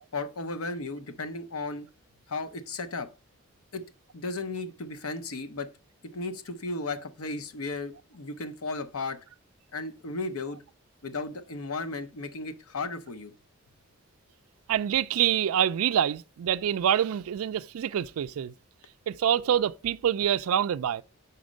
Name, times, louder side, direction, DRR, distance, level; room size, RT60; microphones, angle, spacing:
voice 1, 0.1-1.9 2.3-3.1 3.7-3.8 4.1-5.7 6.1-9.2 9.7-10.6 11.0-13.3, left 3 dB, 80° left, 0.8 m, -35 dB
voice 2, 14.7-18.5 19.1-21.0, right 9 dB, 80° right, 0.3 m, -26 dB
5.2 x 4.3 x 5.0 m
head